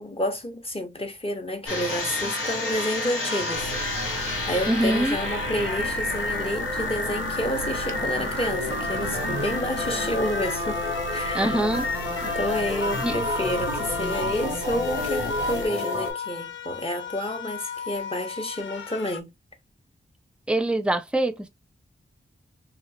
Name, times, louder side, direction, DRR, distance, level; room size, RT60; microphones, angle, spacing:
voice 1, 0.0-4.1 4.5-11.6 12.2-19.3, equal, 25° left, 0.9 m, -30 dB
sound 1, 1.7-16.1, left 2 dB, 90° left, 1.3 m, -29 dB
sound 2, 3.5-15.7, right 4 dB, 70° right, 0.5 m, -37 dB
voice 2, 4.7-5.2 11.3-11.9 13.0-13.2 20.5-21.5, right 1 dB, 5° right, 0.4 m, -24 dB
sound 3, 7.6-19.2, left 7 dB, 65° left, 0.4 m, -38 dB
2.9 x 2.3 x 2.7 m
cardioid pair, 60°, 21 cm